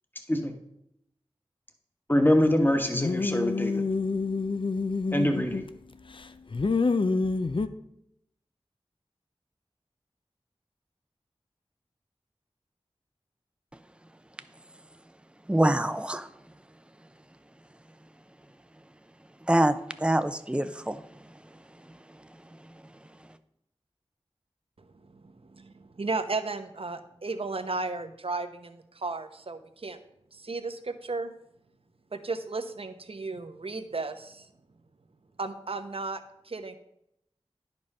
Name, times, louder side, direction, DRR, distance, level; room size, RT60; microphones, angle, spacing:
voice 1, 2.1-3.8 5.1-5.6, left 1 dB, 20° left, 5 dB, 1.4 m, -24 dB
sound 1, 2.9-5.8 6.1-7.7, left 4 dB, 55° left, 0.5 m, -27 dB
voice 2, 15.5-16.3 19.5-21.0, right 1 dB, 10° right, 11 dB, 0.6 m, -25 dB
voice 3, 24.8-30.0 30.3-31.3 32.1-34.5 35.4-36.8, right 3 dB, 65° right, 9 dB, 0.8 m, -34 dB
10.5 x 5.3 x 5.5 m, 0.79 s
wide cardioid pair, 50°, 11 cm